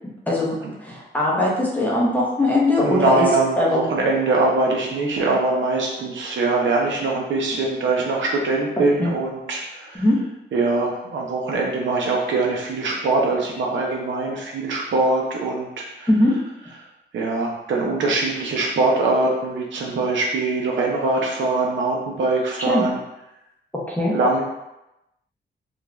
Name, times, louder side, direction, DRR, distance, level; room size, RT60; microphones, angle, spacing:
voice 1, 0.3-3.3 3.6-3.8 9.0-9.1 9.9-10.2 16.1-16.3 22.7-22.9 23.7-24.1, left 1 dB, 10° left, -5 dB, 0.6 m, -20 dB
voice 2, 2.8-10.0 10.5-16.1 17.1-23.0 24.1-24.4, right 3 dB, 90° right, -2 dB, 0.6 m, -22 dB
2.4 x 2.3 x 3.0 m, 0.90 s
wide cardioid pair, 130°, 19 cm